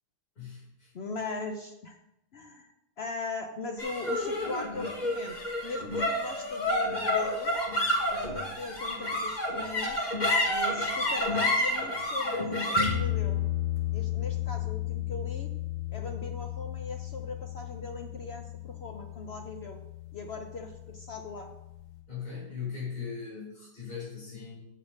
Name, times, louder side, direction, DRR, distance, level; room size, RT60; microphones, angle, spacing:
voice 1, 0.4-0.9 22.1-24.5, left 6 dB, 70° left, -7 dB, 4.3 m, -39 dB
voice 2, 0.9-2.0 2.3-5.4 5.6-7.5 8.1-10.1 10.5-13.4 13.9-15.5 15.9-19.8 20.1-21.5, left 3 dB, 55° left, 4 dB, 0.8 m, -39 dB
sound 1, 3.8-20.3, left 2 dB, 30° left, 1.6 m, -30 dB
6.8 x 6.7 x 6.3 m, 0.87 s
omnidirectional pair, 1.6 m